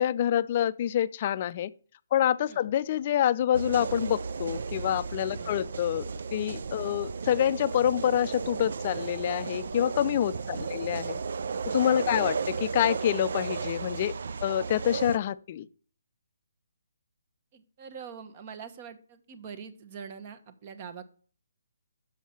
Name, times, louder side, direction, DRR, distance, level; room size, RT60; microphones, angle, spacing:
voice 1, 0.0-1.7 2.1-6.1 6.3-11.2 11.7-14.1 14.4-15.7, left 11 dB, 35° left, 0.4 m, -27 dB
sound 1, 3.5-15.2, right 5 dB, 65° right, 0.4 m, -34 dB
voice 2, 10.4-10.9 12.0-12.4 17.5-21.0, right 6 dB, 35° right, 1.0 m, -44 dB
6.4 x 5.5 x 7.2 m
hypercardioid pair, 155°, 0 cm